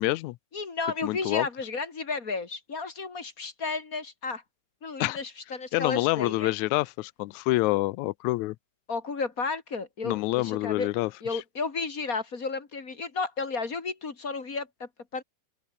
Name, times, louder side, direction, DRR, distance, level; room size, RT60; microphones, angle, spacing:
voice 1, 0.0-0.4 1.0-1.5 5.0-5.2 5.7-8.6 10.0-11.1, left 20 dB, 80° left, 1.9 m, -27 dB
voice 2, 0.5-4.4 4.8-6.5 8.9-10.9 11.2-15.2, left 4 dB, 30° left, 2.0 m, -33 dB
open air
omnidirectional pair, 3.6 m